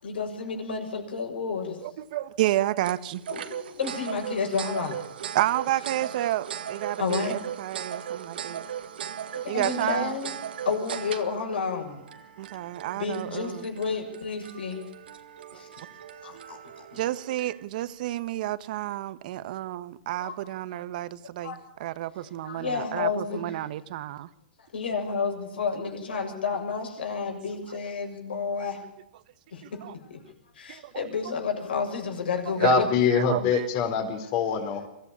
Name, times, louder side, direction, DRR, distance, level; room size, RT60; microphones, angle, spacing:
voice 1, 0.0-1.8 3.3-5.0 7.0-7.4 8.6-8.7 9.1-10.3 10.7-12.0 13.0-14.8 15.5-15.8 16.2-17.0 20.2-20.4 21.4-21.6 22.4-23.4 24.7-28.8 29.5-30.2 30.6-32.9, left 5 dB, 80° left, 7.0 m, -31 dB
voice 2, 1.8-3.2 5.3-8.6 9.5-10.2 12.4-13.7 15.5-15.6 16.5-16.6 17.0-24.3 29.6-29.9 30.7-31.3 32.6-33.7, right 14 dB, 55° right, 1.2 m, -30 dB
sound 1, 2.8-17.6, right 9 dB, 75° right, 1.8 m, -38 dB
voice 3, 32.6-34.9, left 8 dB, 45° left, 4.0 m, -24 dB
24.0 x 15.0 x 8.5 m
hypercardioid pair, 135°, 5 cm